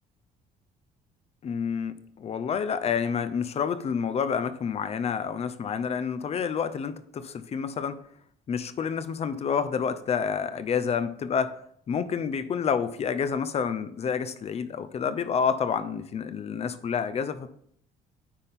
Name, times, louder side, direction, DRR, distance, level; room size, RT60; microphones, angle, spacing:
voice 1, 1.4-8.0 8.5-11.5 11.9-17.5, left 6 dB, 40° left, 12 dB, 0.6 m, -29 dB
9.9 x 4.2 x 3.6 m, 0.66 s
cardioid pair, 110°, 17 cm